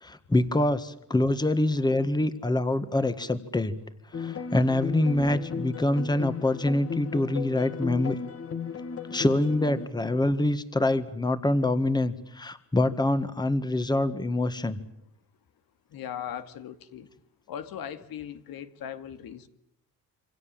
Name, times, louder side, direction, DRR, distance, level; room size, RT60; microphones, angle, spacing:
voice 1, 0.0-3.7 4.2-8.2 9.1-14.8, left 1 dB, 10° left, 11 dB, 1.8 m, -25 dB
sound 1, 4.1-9.9, left 6 dB, 40° left, 2.1 m, -35 dB
voice 2, 15.9-17.1 17.5-19.5, left 9 dB, 85° left, 10 dB, 2.3 m, -38 dB
27.5 x 26.0 x 7.6 m, 0.74 s
cardioid pair, 140°, 34 cm